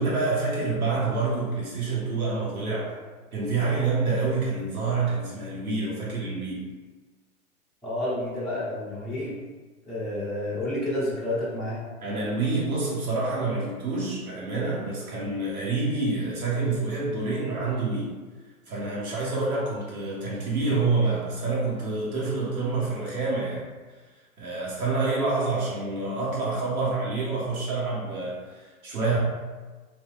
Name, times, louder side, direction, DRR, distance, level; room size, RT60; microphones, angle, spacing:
voice 1, 0.0-2.9 3.3-6.6 12.0-18.1 18.7-23.7 24.4-28.5 28.8-29.2, right 3 dB, 80° right, -6 dB, 1.5 m, -27 dB
voice 2, 7.8-9.4 9.9-11.8, left 1 dB, ahead, -11 dB, 0.4 m, -30 dB
3.6 x 2.7 x 2.5 m, 1.3 s
hypercardioid pair, 125°, 43 cm